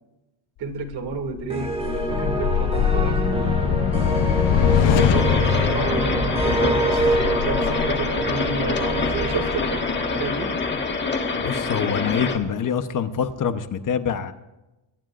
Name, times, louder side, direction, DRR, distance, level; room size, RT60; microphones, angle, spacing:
voice 1, 0.6-3.7 4.7-10.5, right 5 dB, 60° right, 4 dB, 2.6 m, -31 dB
sound 1, 0.9-9.3, left 10 dB, 85° left, 1.0 m, -24 dB
sound 2, 1.5-11.6, equal, 15° right, 2.9 m, -25 dB
sound 3, 5.0-12.4, left 4 dB, 25° left, 1.7 m, -26 dB
voice 2, 11.4-14.3, left 7 dB, 45° left, 9 dB, 1.0 m, -25 dB
23.0 x 22.5 x 2.6 m, 0.99 s
cardioid pair, 160°, 44 cm